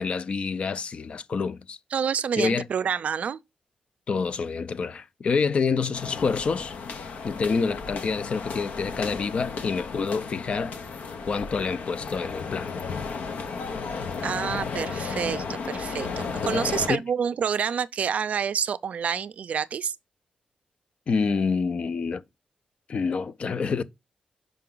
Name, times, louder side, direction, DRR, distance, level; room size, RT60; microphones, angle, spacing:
voice 1, 0.0-1.8 2.4-2.6 4.1-6.8 7.2-10.8 11.3-12.7 16.4-16.6 16.9-17.0 21.1-22.2 22.9-23.8, left 5 dB, 50° left, 0.5 m, -27 dB
voice 2, 1.9-3.4 14.2-20.0, right 7 dB, 65° right, 0.4 m, -28 dB
sound 1, 5.9-16.9, left 5 dB, 90° left, 0.8 m, -34 dB
5.7 x 5.2 x 3.8 m
wide cardioid pair, 140°, 3 cm